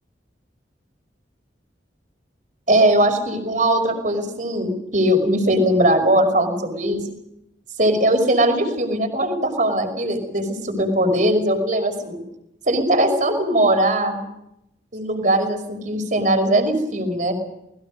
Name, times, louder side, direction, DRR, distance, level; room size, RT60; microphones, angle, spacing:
voice 1, 2.7-7.1 7.8-12.2 12.7-14.2 14.9-17.3, right 1 dB, 45° right, 5 dB, 5.6 m, -20 dB
28.5 x 21.0 x 5.4 m, 0.81 s
head